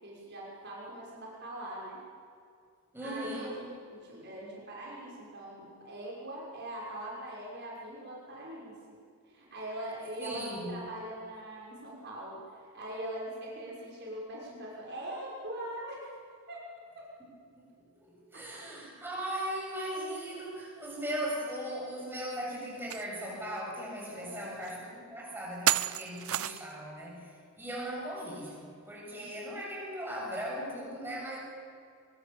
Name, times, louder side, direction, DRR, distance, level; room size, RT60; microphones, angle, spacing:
voice 1, 0.0-2.0 3.0-9.0 9.2-16.1 16.5-16.7 16.9-17.1 18.3-18.4 21.5-21.7 24.1-24.5, right 1 dB, 50° right, -4 dB, 6.0 m, -42 dB
voice 2, 2.9-3.6 10.2-10.8 17.2-17.3 17.6-31.4, equal, 10° right, -4 dB, 7.7 m, -38 dB
sound 1, 22.9-23.1 23.6-23.7 24.6-24.7 25.7-26.8, right 12 dB, 70° right, 0.7 m, -30 dB
23.5 x 23.0 x 7.2 m, 2.3 s
head